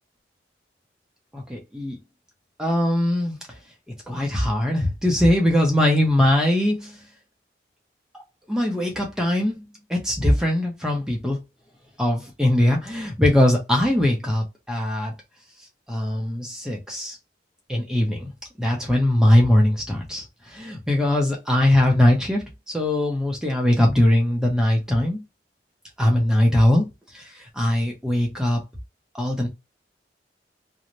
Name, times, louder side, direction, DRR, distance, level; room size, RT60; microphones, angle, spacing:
voice 1, 1.3-2.0 2.6-3.4 4.1-7.0 8.5-11.4 12.0-15.1 15.9-17.2 17.7-18.3 18.6-25.2 26.0-26.9 27.1-28.6 29.1-29.5, left 1 dB, 5° right, 0.5 m, -21 dB
2.5 x 2.0 x 2.9 m
head